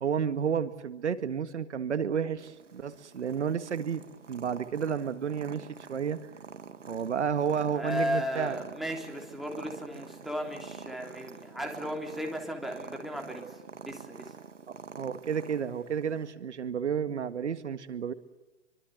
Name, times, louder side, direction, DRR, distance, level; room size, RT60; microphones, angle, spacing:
voice 1, 0.0-4.0 4.3-6.2 6.9-8.6 14.7-18.1, right 7 dB, 70° right, 11 dB, 1.9 m, -31 dB
Purr, 2.4-16.3, right 5 dB, 85° right, 2.6 m, -47 dB
voice 2, 7.7-14.3, equal, ahead, 1 dB, 3.4 m, -35 dB
27.0 x 24.5 x 7.9 m, 1.1 s
hypercardioid pair, 145°, 36 cm